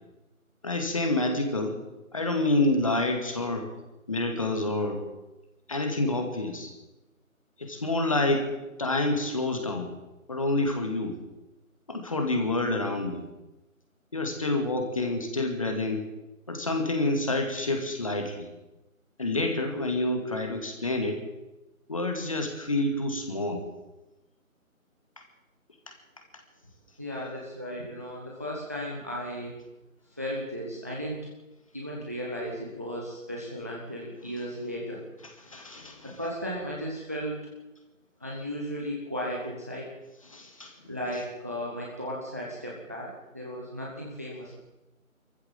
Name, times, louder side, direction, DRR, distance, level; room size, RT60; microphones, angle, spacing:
voice 1, 0.6-1.8 2.1-3.7 4.1-5.0 5.7-6.7 7.6-8.5 8.8-9.9 10.3-11.2 11.9-13.3 14.1-16.1 16.5-18.5 19.2-21.2 21.9-23.7 35.4-36.1 40.3-40.7, left 2 dB, 25° left, 4 dB, 2.1 m, -28 dB
voice 2, 27.0-29.6 30.0-31.3 31.7-35.0 36.0-37.5 38.2-39.9 40.9-44.6, equal, 10° right, -3 dB, 1.2 m, -35 dB
24.5 x 14.5 x 7.5 m, 1.0 s
figure-of-eight pair, 165°, 42 cm